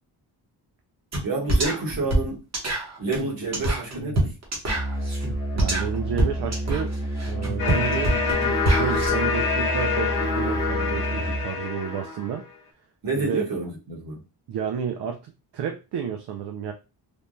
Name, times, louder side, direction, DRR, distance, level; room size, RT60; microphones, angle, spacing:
sound 1, 1.1-1.2 1.5-9.1, right 1 dB, 40° right, 0.9 m, -26 dB
voice 1, 1.2-2.4 3.0-4.3 13.0-14.2, right 3 dB, 55° right, 1.2 m, -28 dB
Musical instrument, 4.7-11.6, right 1 dB, 10° left, 0.6 m, -30 dB
voice 2, 5.5-6.9 7.3-8.1 8.7-12.4 13.2-13.5 14.5-16.7, right 8 dB, 75° right, 0.5 m, -31 dB
sound 2, 7.6-12.4, left 5 dB, 55° left, 0.8 m, -26 dB
3.3 x 2.1 x 2.6 m
wide cardioid pair, 145°, 41 cm